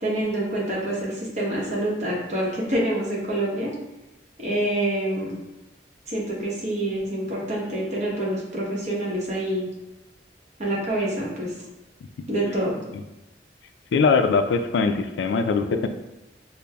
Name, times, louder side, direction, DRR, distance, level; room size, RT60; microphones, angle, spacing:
voice 1, 0.0-3.7 4.4-5.3 6.1-9.7 10.6-11.5 12.3-12.8, right 1 dB, 40° right, -4 dB, 0.9 m, -26 dB
voice 2, 13.9-15.9, left 4 dB, 75° left, 8 dB, 0.3 m, -21 dB
5.1 x 2.0 x 2.2 m, 0.99 s
head